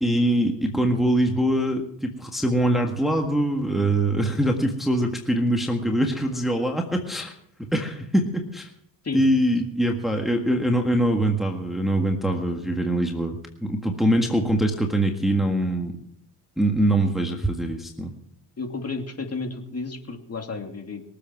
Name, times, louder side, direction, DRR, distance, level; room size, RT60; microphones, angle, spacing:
voice 1, 0.0-7.3 7.6-8.7 9.1-15.9 16.6-18.1, right 1 dB, ahead, 2 dB, 1.7 m, -23 dB
voice 2, 18.6-21.0, left 3 dB, 30° left, 4 dB, 2.7 m, -32 dB
22.5 x 8.0 x 6.0 m, 0.69 s
cardioid pair, 95°, 47 cm